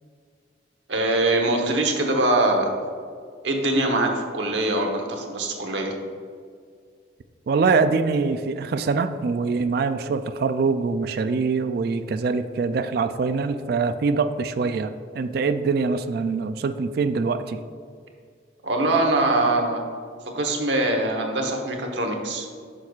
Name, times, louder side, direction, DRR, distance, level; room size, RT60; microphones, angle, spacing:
voice 1, 0.9-2.7 3.4-5.9 18.6-19.8 20.3-22.5, right 2 dB, 75° right, 2 dB, 1.1 m, -23 dB
voice 2, 7.5-17.6, right 4 dB, 55° right, 10 dB, 0.3 m, -24 dB
9.8 x 6.2 x 2.4 m, 2.1 s
head